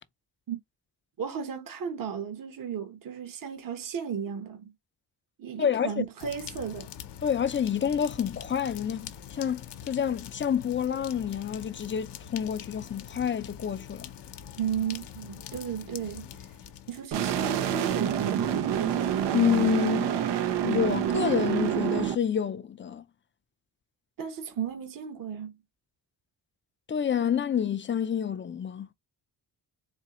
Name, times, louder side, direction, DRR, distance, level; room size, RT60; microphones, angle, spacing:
voice 1, 1.2-4.7 5.4-6.9 14.6-16.3 16.9-18.8 24.2-25.5, right 7 dB, 55° right, 1.0 m, -34 dB
voice 2, 5.6-5.9 7.2-14.1 19.3-20.2 20.6-23.0 26.9-28.9, left 8 dB, 30° left, 0.4 m, -28 dB
sound 1, 6.2-17.1, left 9 dB, 85° left, 0.8 m, -44 dB
sound 2, 17.1-22.1, right 9 dB, 85° right, 0.7 m, -27 dB
4.3 x 2.7 x 2.9 m
cardioid pair, 80°, 41 cm